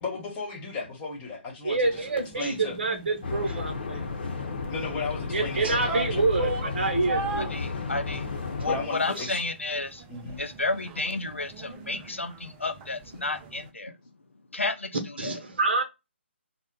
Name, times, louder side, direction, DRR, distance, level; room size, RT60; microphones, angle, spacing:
voice 1, 0.0-2.0 2.3-2.8 4.7-6.2 7.5-7.9 8.6-9.4 10.1-10.4, left 4 dB, 20° left, 1.1 m, -35 dB
voice 2, 1.6-4.0 5.3-7.5 9.2-9.3 15.2-15.8, right 3 dB, 55° right, 0.8 m, -27 dB
sound 1, 1.8-13.7, right 4 dB, 15° right, 0.4 m, -40 dB
sound 2, 3.2-8.9, left 4 dB, 55° left, 0.9 m, -33 dB
voice 3, 7.4-8.3 8.6-14.0 14.5-15.4, left 3 dB, 85° left, 0.6 m, -32 dB
2.8 x 2.1 x 3.6 m
figure-of-eight pair, 140°, 7 cm